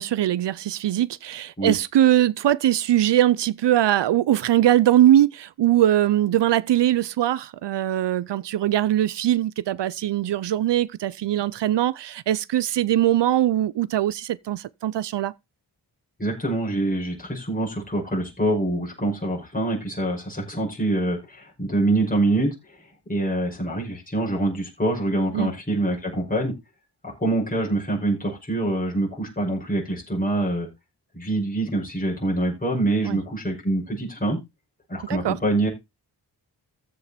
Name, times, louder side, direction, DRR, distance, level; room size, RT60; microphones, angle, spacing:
voice 1, 0.0-15.3 25.3-25.5 33.0-33.2 35.1-35.4, right 12 dB, 80° right, 0.6 m, -21 dB
voice 2, 16.2-26.5 27.0-30.7 31.1-34.4 34.9-35.7, right 2 dB, 20° left, 5.9 m, -25 dB
14.5 x 5.5 x 4.3 m
wide cardioid pair, 130°, 41 cm